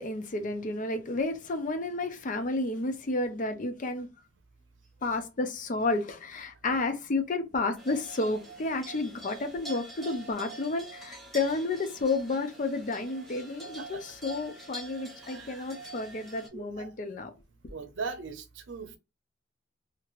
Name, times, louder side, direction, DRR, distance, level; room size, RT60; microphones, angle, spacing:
voice 1, 0.0-4.1 5.0-17.3, left 3 dB, 45° left, 0.5 m, -31 dB
sound 1, 7.8-16.5, right 2 dB, ahead, 1.1 m, -45 dB
voice 2, 15.2-15.7 16.5-16.9 17.7-19.0, right 4 dB, 85° right, 0.6 m, -39 dB
3.0 x 2.8 x 2.5 m
head